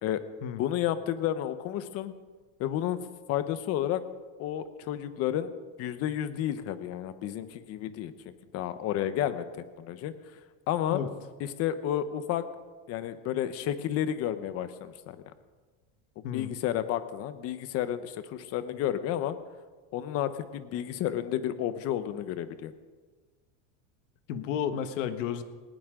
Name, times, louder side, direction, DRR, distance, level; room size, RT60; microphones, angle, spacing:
voice 1, 0.6-2.2 2.6-4.0 4.4-5.5 5.8-10.1 10.7-11.0 11.4-12.5 12.9-15.2 16.3-19.4 19.9-22.7, left 11 dB, 40° left, 12 dB, 1.1 m, -31 dB
voice 2, 24.3-25.4, left 8 dB, 85° left, 9 dB, 1.5 m, -32 dB
19.0 x 19.0 x 3.8 m, 1.4 s
cardioid pair, 160°, 37 cm